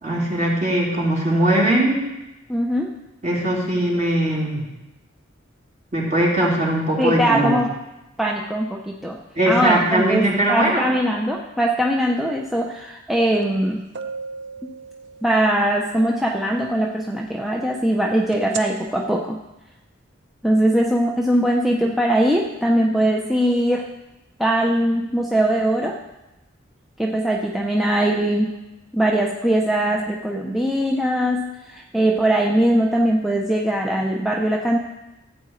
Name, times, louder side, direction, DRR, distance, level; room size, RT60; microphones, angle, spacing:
voice 1, 0.0-2.1 3.2-4.7 5.9-7.6 9.4-10.9, right 1 dB, 40° right, -5 dB, 3.0 m, -20 dB
voice 2, 2.5-3.0 7.0-7.7 8.2-9.2 9.5-13.8 15.2-19.4 20.4-23.9 24.4-26.0 27.0-28.5 28.9-34.8, right 1 dB, ahead, -2 dB, 0.6 m, -21 dB
sound 1, 13.4-13.5 13.9-15.7 18.3-18.6, right 5 dB, 65° right, 0.7 m, -34 dB
15.0 x 8.5 x 3.2 m, 0.98 s
head